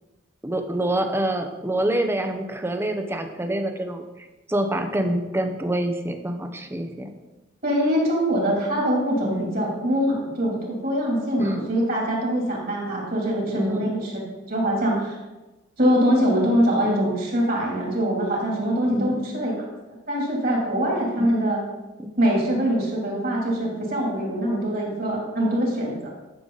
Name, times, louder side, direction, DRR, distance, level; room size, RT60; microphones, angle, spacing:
voice 1, 0.4-4.0 4.5-7.1 9.2-9.5 11.4-11.7 13.5-13.9 16.8-17.1 18.9-19.3 21.2-21.3 22.0-22.1, right 1 dB, 10° right, 5 dB, 0.8 m, -26 dB
voice 2, 7.6-14.1 14.4-15.2 15.8-21.6 22.2-26.1, equal, 50° right, -2 dB, 3.2 m, -23 dB
12.5 x 6.8 x 4.0 m, 1.1 s
head